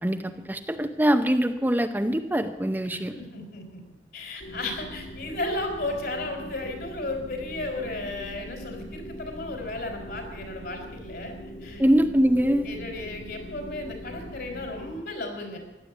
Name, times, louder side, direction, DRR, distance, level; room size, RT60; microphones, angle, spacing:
voice 1, 0.0-3.1 11.8-12.8, equal, 10° right, 8 dB, 0.6 m, -23 dB
voice 2, 2.9-3.8 4.1-11.3 11.6-11.8 12.6-15.6, left 2 dB, 60° left, 4 dB, 4.2 m, -34 dB
sound 1, 4.4-15.0, equal, 80° left, 5.6 m, -41 dB
15.5 x 11.0 x 8.2 m, 1.1 s
head